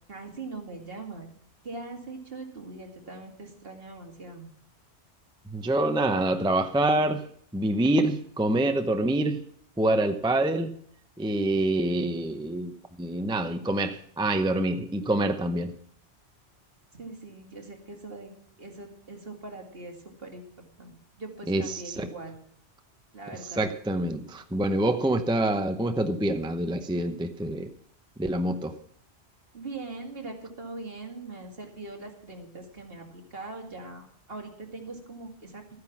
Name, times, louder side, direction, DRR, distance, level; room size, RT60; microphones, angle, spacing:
voice 1, 0.1-1.3 1.6-4.5 17.0-18.3 18.6-22.4 23.1-23.7 29.5-35.6, right 3 dB, 60° right, 2 dB, 2.5 m, -41 dB
voice 2, 5.5-7.3 7.5-9.4 9.8-10.7 11.2-12.7 13.0-15.7 21.5-22.1 23.6-27.7 28.2-28.7, right 1 dB, 5° right, 7 dB, 0.6 m, -26 dB
13.0 x 9.6 x 6.0 m, 0.65 s
omnidirectional pair, 1.1 m